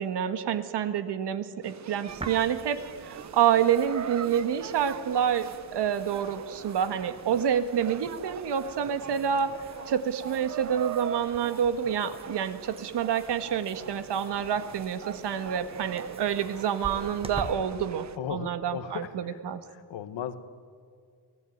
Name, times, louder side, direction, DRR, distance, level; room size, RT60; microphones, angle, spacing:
voice 1, 0.0-2.8 3.1-9.5 9.9-19.6, right 8 dB, 65° right, 10 dB, 1.8 m, -28 dB
sound 1, 1.6-18.2, right 8 dB, 40° right, 0.9 m, -42 dB
sound 2, 2.1-17.5, right 3 dB, 15° right, 1.2 m, -47 dB
voice 2, 18.2-19.4 19.7-20.4, left 9 dB, 70° left, 11 dB, 1.7 m, -36 dB
28.5 x 18.5 x 9.5 m, 2.2 s
cardioid pair, 155°, 45 cm